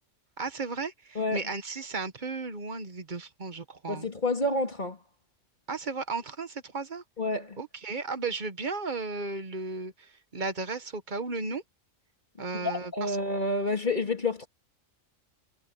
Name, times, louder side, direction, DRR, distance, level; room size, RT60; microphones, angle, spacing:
voice 1, 0.4-4.1 5.7-7.0 7.6-11.6 12.4-13.2, right 3 dB, 40° right, 1.3 m, -35 dB
voice 2, 3.9-5.0 7.2-7.6 12.5-14.5, left 2 dB, 35° left, 2.7 m, -29 dB
omnidirectional pair, 1.4 m